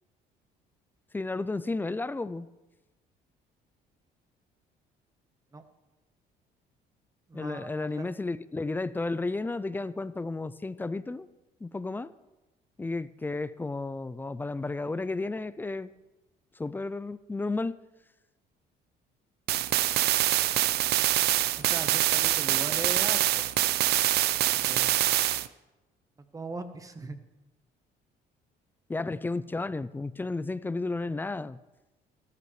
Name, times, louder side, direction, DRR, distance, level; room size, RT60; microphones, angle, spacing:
voice 1, 1.1-2.5 7.3-11.3 11.6-12.1 12.8-15.9 16.6-17.8 28.9-31.6, left 3 dB, 10° left, 16 dB, 0.4 m, -33 dB
voice 2, 7.3-8.1 21.5-23.5 24.5-25.0 26.3-27.2, right 3 dB, 20° right, 8 dB, 1.0 m, -39 dB
sound 1, 19.5-25.5, right 14 dB, 70° right, 0.5 m, -25 dB
13.5 x 13.5 x 3.2 m, 1.1 s
cardioid pair, 110°, 17 cm